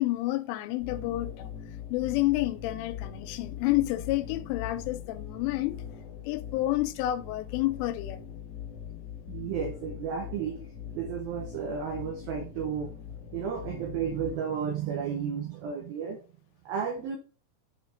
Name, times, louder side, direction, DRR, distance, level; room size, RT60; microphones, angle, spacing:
voice 1, 0.0-1.5 1.9-5.8 6.2-8.2, left 17 dB, 85° left, 3.1 m, -29 dB
sound 1, 0.8-14.4, left 8 dB, 35° left, 3.7 m, -41 dB
voice 2, 9.3-10.6 10.9-12.9 13.3-16.2 16.7-17.2, right 7 dB, 85° right, 2.1 m, -33 dB
7.8 x 4.4 x 4.2 m
omnidirectional pair, 5.6 m